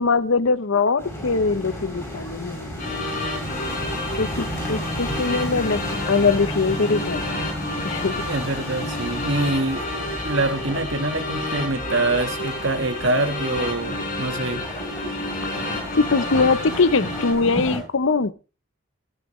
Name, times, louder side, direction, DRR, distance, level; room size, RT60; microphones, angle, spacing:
voice 1, 0.0-2.7 4.2-5.8 6.1-7.3 7.8-8.2 15.9-18.3, left 4 dB, 65° left, 15 dB, 0.8 m, -22 dB
sound 1, 1.0-17.8, equal, 15° left, 8.0 m, -33 dB
sound 2, 2.8-17.3, left 2 dB, 40° left, 4.6 m, -30 dB
voice 2, 8.2-9.8 10.2-14.6, right 2 dB, 60° right, 8 dB, 1.5 m, -25 dB
15.5 x 13.5 x 3.1 m, 0.33 s
head